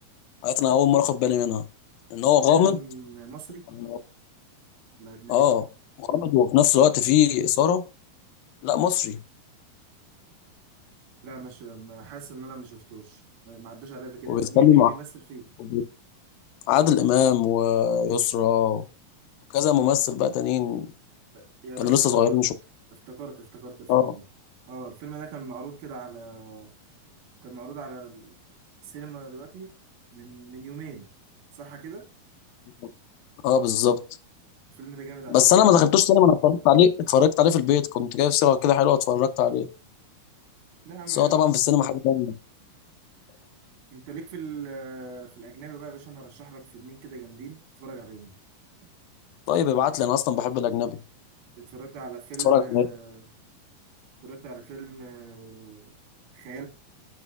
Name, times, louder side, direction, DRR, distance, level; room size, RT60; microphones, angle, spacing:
voice 1, 0.4-1.6 2.1-2.8 3.8-4.0 5.3-5.7 6.0-7.8 8.6-9.2 14.3-14.9 15.6-15.8 16.7-18.8 19.5-20.9 21.8-22.5 23.9-24.1 33.4-34.0 35.3-39.7 41.1-42.3 49.5-51.0 52.5-52.9, left 10 dB, 85° left, 2.3 m, -20 dB
voice 2, 2.5-3.7 5.0-5.5 11.2-15.5 21.3-22.4 22.9-24.2 24.7-26.7 27.4-28.3 28.8-29.7 30.1-31.1 31.5-32.1 34.7-35.7 40.9-41.4 43.9-48.3 51.6-53.3 54.2-56.0 56.3-56.7, right 5 dB, 90° right, 3.5 m, -41 dB
9.5 x 6.0 x 2.3 m
omnidirectional pair, 4.1 m